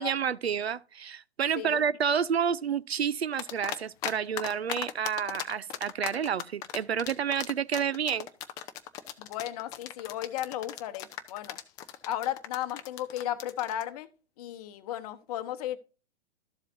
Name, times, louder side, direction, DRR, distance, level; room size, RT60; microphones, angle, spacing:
voice 1, 0.0-8.3, right 7 dB, 75° right, 0.6 m, -29 dB
sound 1, 3.4-4.1 4.4-13.8, left 11 dB, 10° left, 0.3 m, -37 dB
voice 2, 9.2-11.6 12.0-14.1 14.4-15.8, left 12 dB, 35° left, 1.0 m, -35 dB
13.0 x 7.4 x 2.6 m
figure-of-eight pair, 110°, 32 cm